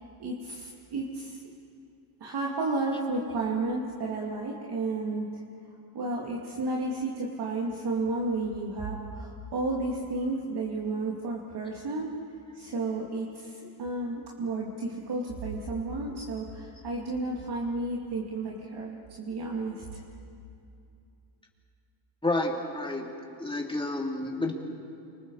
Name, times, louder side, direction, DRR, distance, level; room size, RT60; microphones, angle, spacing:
voice 1, 0.2-1.4 2.2-5.4 5.9-12.1 12.5-20.0, right 2 dB, 50° right, -2 dB, 2.7 m, -32 dB
voice 2, 22.2-23.0 23.4-24.5, left 2 dB, 10° left, -1 dB, 3.4 m, -29 dB
29.0 x 26.0 x 4.9 m, 2.6 s
cardioid pair, 105°, 49 cm